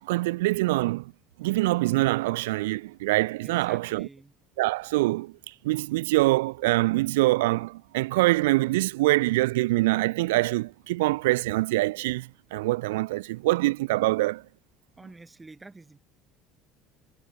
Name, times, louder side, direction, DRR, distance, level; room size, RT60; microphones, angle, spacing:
voice 1, 0.1-1.0 1.4-4.1 4.6-5.3 5.6-14.4, right 19 dB, 80° right, 0.4 m, -24 dB
voice 2, 3.4-4.3 15.0-16.0, right 3 dB, 15° right, 3.2 m, -48 dB
hypercardioid pair, 70°, 0 cm